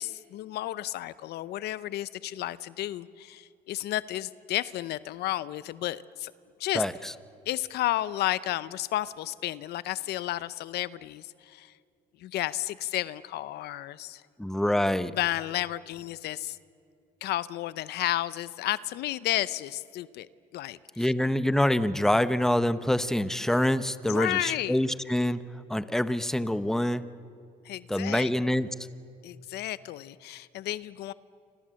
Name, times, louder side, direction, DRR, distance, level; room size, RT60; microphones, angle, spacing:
voice 1, 0.0-6.3 6.6-6.8 7.5-11.7 12.2-14.2 15.0-16.6 17.2-21.1 24.1-24.8 27.6-28.3 29.2-31.1, left 14 dB, 75° left, 17 dB, 0.7 m, -32 dB
voice 2, 6.7-7.1 14.4-15.1 21.0-25.4 25.7-27.0 27.9-28.7, left 1 dB, 5° left, 13 dB, 0.9 m, -26 dB
28.5 x 26.5 x 7.6 m, 2.4 s
cardioid pair, 110°, 17 cm